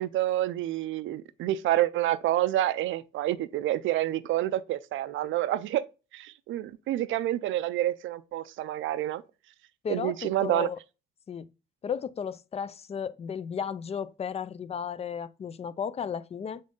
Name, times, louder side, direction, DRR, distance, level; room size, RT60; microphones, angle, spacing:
voice 1, 0.0-5.8 6.1-9.2 9.9-10.7, right 14 dB, 75° right, 0.4 m, -28 dB
voice 2, 9.8-10.8 11.3-11.5 11.8-16.6, left 7 dB, 30° left, 0.3 m, -34 dB
4.0 x 3.7 x 3.7 m
cardioid pair, 90°, 20 cm